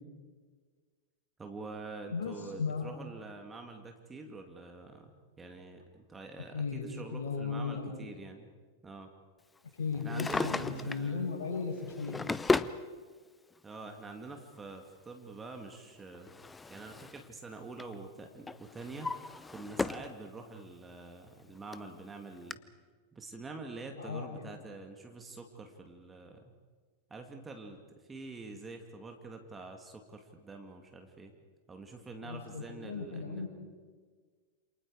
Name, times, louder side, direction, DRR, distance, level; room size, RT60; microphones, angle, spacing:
voice 1, 1.4-5.1 5.4-8.5 8.8-9.1 9.9-11.3 13.6-16.3 16.7-19.1 19.5-22.6 23.1-26.5 27.1-31.3 31.7-33.4, right 3 dB, 15° right, 3 dB, 2.2 m, -46 dB
voice 2, 2.1-2.9 6.5-8.0 9.8-12.3 24.0-24.6 32.2-33.5, left 5 dB, 60° left, 0 dB, 7.0 m, -36 dB
Drawer open or close, 10.0-11.1 11.8-12.8 13.9-14.0 15.7-17.3 17.6-18.0 18.5-20.1 20.6-20.7 21.4-21.5 21.7-21.8 22.5-22.6, left 3 dB, 10° left, 0.7 m, -34 dB
28.5 x 27.0 x 4.9 m, 1.5 s
figure-of-eight pair, 90°, 0 cm